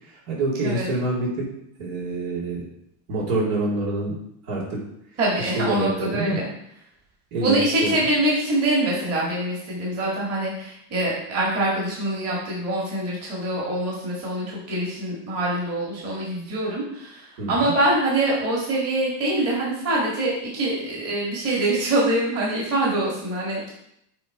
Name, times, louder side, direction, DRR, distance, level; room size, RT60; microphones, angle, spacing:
voice 1, 0.0-1.5 1.8-2.6 3.1-4.2 4.4-4.8 5.4-6.4 7.3-8.0 17.4-17.7, right 2 dB, 70° right, -4 dB, 2.9 m, -26 dB
voice 2, 5.2-6.5 7.4-23.7, right 1 dB, 30° right, -4 dB, 2.0 m, -24 dB
7.8 x 3.5 x 4.8 m, 0.75 s
supercardioid pair, 140°, 50 cm